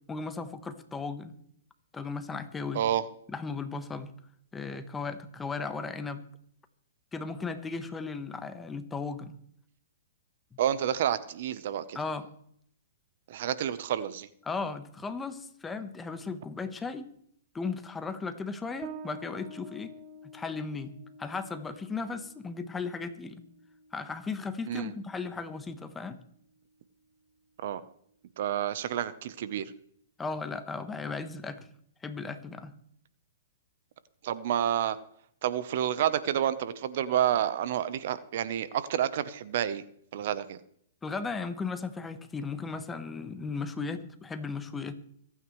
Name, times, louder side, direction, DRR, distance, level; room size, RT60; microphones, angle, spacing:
voice 1, 0.1-1.3 1.9-2.8 3.3-4.1 4.5-6.2 7.1-9.4 11.9-12.3 14.4-17.1 17.5-19.9 20.3-20.9 21.2-23.4 23.9-26.2 30.2-31.7 32.0-32.7 41.0-45.0, left 4 dB, 10° left, 9 dB, 1.1 m, -36 dB
voice 2, 10.6-12.0 13.3-14.3 24.7-24.9 27.6-27.8 28.4-29.7 34.2-35.0 35.4-39.8 40.1-40.6, right 10 dB, 55° right, 14 dB, 0.9 m, -29 dB
Bass guitar, 18.8-26.0, right 1 dB, 30° right, 1.2 m, -49 dB
25.5 x 9.3 x 3.2 m, 0.67 s
hypercardioid pair, 135°, 0 cm